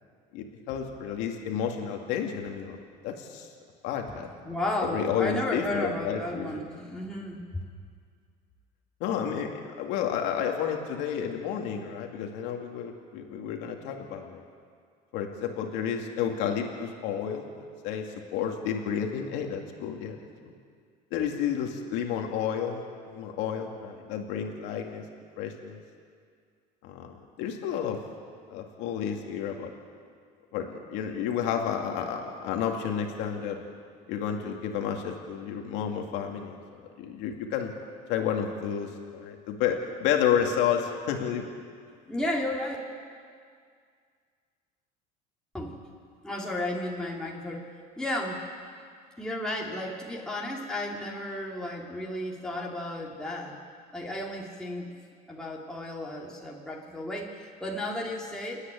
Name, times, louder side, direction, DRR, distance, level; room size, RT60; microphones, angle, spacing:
voice 1, 0.3-3.5 3.8-4.3 4.9-6.6 9.0-14.4 15.1-20.2 20.4-20.5 21.1-25.0 25.4-25.8 26.8-28.0 28.5-29.7 30.5-33.6 34.1-37.7 38.1-41.5, left 8 dB, 75° left, 2 dB, 2.4 m, -31 dB
voice 2, 4.1-7.5 42.1-42.8 45.5-45.8 46.2-47.6 48.0-48.4 49.2-53.6 53.9-54.9 55.3-58.6, left 1 dB, 5° left, -3 dB, 2.7 m, -33 dB
29.5 x 9.8 x 9.2 m, 2.1 s
cardioid pair, 120°, 18 cm